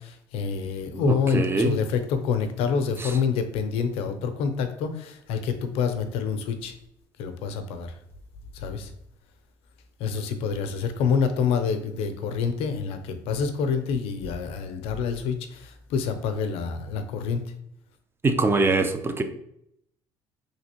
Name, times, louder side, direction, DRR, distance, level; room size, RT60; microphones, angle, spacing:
voice 1, 0.0-6.7 7.2-7.9 8.5-8.9 10.0-17.4, left 6 dB, 75° left, 8 dB, 0.5 m, -27 dB
voice 2, 0.9-1.8 3.0-3.1 18.2-19.2, right 3 dB, 20° right, 8 dB, 0.4 m, -23 dB
3.3 x 2.8 x 2.8 m, 0.75 s
supercardioid pair, 90°, 10 cm